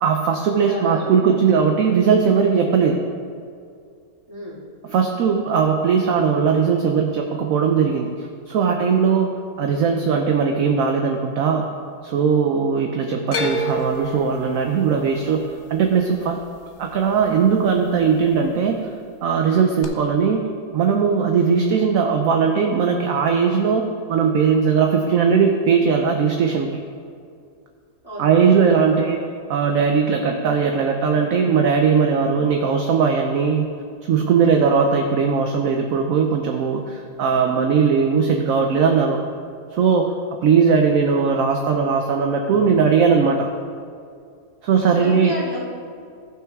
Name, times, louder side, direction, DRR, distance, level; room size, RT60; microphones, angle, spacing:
voice 1, 0.0-3.1 4.9-9.3 9.6-11.7 12.0-15.4 15.7-16.4 16.8-18.9 19.2-20.4 20.7-26.8 28.2-29.2 29.5-33.7 34.1-39.2 39.7-40.1 40.4-43.5 44.6-45.3, right 6 dB, 65° right, 3 dB, 1.0 m, -19 dB
voice 2, 0.7-1.7 4.3-4.6 28.0-29.2 37.5-37.7 44.9-45.6, equal, 15° right, -8 dB, 2.5 m, -32 dB
sound 1, 13.3-17.5 17.8-18.5 19.8-19.9, equal, 55° left, 0.7 m, -30 dB
15.0 x 6.1 x 3.5 m, 2.3 s
omnidirectional pair, 1.7 m